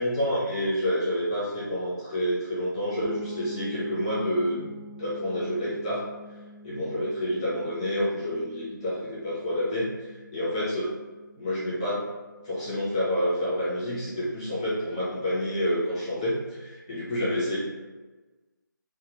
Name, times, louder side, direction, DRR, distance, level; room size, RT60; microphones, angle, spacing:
voice 1, 0.0-4.7 5.0-6.1 6.6-10.9 11.4-12.0 12.4-17.6, equal, 15° left, -11 dB, 0.9 m, -28 dB
sound 1, 3.0-12.7, equal, 75° right, 0.6 m, -45 dB
3.3 x 2.1 x 3.0 m, 1.2 s
figure-of-eight pair, 170°, 11 cm